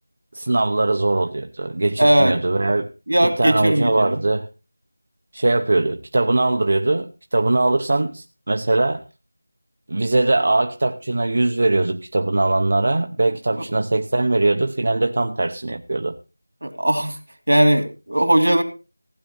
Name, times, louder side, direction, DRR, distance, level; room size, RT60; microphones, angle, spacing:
voice 1, 0.3-2.9 3.2-4.5 5.3-9.0 9.9-16.2, right 2 dB, 50° right, 6 dB, 0.8 m, -21 dB
voice 2, 2.0-2.4 3.1-4.2 16.6-17.2 17.5-18.6, right 1 dB, 90° right, 7 dB, 2.8 m, -18 dB
16.0 x 9.3 x 4.3 m, 0.31 s
figure-of-eight pair, 175°, 0 cm